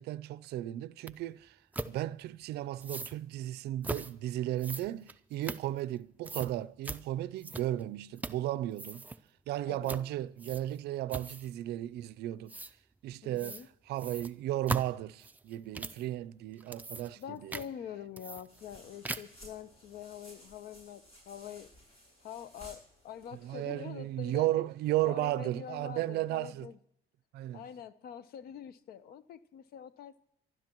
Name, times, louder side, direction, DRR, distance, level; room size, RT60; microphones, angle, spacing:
voice 1, 0.0-1.6 1.9-9.0 9.5-12.5 13.0-13.6 13.9-17.6 23.4-26.7 27.3-27.6, right 14 dB, 75° right, 0.5 m, -34 dB
sound 1, 1.1-1.2 1.7-1.9 2.8-3.2 3.8-4.1 4.6-6.0 6.2-6.5 6.8-7.0 7.4-7.8 8.2-8.5 8.7-9.2 9.9-10.1 10.4-10.8 11.1-11.5 12.5-12.7 13.4-13.7 14.0-16.0 16.5-17.2 17.5-17.7 18.2-18.8 19.0-19.4, right 2 dB, 10° right, 0.5 m, -40 dB
voice 2, 9.7-10.0 13.2-13.7 17.1-21.7 22.2-24.5 25.0-26.8 27.5-30.2, left 9 dB, 65° left, 0.8 m, -45 dB
sound 2, 18.5-23.5, equal, 35° left, 7.3 m, -56 dB
25.5 x 12.5 x 3.0 m
cardioid pair, 110°, 17 cm